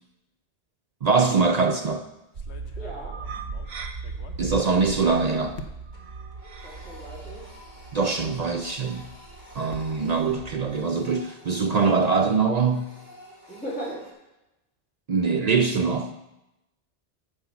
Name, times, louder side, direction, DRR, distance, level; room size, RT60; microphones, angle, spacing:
voice 1, 1.0-2.1 4.4-5.6 7.9-9.1 9.6-12.9 15.1-16.1, right 4 dB, 55° right, 6 dB, 0.5 m, -23 dB
sound 1, 1.5-1.8 2.3-5.1 5.6-6.1 6.8-6.9 7.3-7.4 9.0-11.3, left 3 dB, 85° left, 1.1 m, -47 dB
sound 2, 2.3-10.8, right 4 dB, 70° right, 1.1 m, -38 dB
Printer, 2.6-3.1 3.5-3.6 4.1-5.6 5.9-14.1, left 1 dB, 45° left, 2.1 m, -50 dB
voice 2, 2.8-3.2 6.6-7.5 13.5-14.1, right 1 dB, 10° left, -9 dB, 2.3 m, -37 dB
9.9 x 4.8 x 7.0 m, 0.93 s
omnidirectional pair, 1.1 m